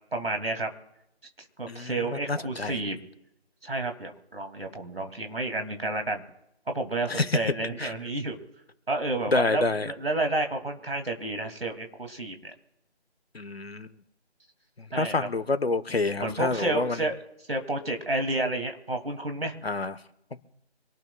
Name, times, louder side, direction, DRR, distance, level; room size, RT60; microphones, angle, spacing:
voice 1, 0.1-0.7 1.6-3.0 3.6-6.2 6.7-8.4 8.9-12.5 14.9-15.3 16.2-17.2 17.5-19.6, right 2 dB, 60° right, 5 dB, 2.6 m, -30 dB
voice 2, 1.7-2.8 7.1-7.4 7.8-7.9 9.3-9.9 13.3-14.0 14.8-17.1 19.6-20.0, left 3 dB, 65° left, 13 dB, 1.1 m, -28 dB
25.5 x 18.5 x 2.4 m, 0.83 s
figure-of-eight pair, 160°, 33 cm